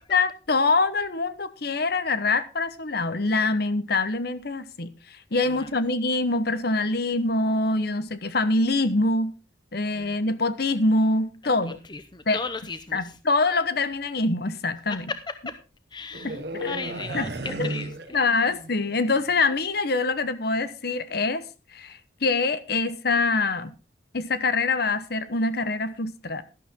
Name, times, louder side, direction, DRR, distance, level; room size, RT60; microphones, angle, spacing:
voice 1, 0.1-4.9 5.3-9.3 9.7-11.8 12.3-12.4 12.9-15.1 16.2-16.8 17.1-17.3 17.6-17.7 18.1-21.4 21.7-23.7 24.1-26.4, left 3 dB, 55° left, 1.0 m, -24 dB
voice 2, 11.9-13.0 15.1-15.2 15.5-15.6 15.9-18.2, left 4 dB, 25° left, 0.7 m, -35 dB
sound 1, 16.1-18.8 19.1-19.4, right 2 dB, 55° right, 1.4 m, -34 dB
12.5 x 11.5 x 3.6 m
head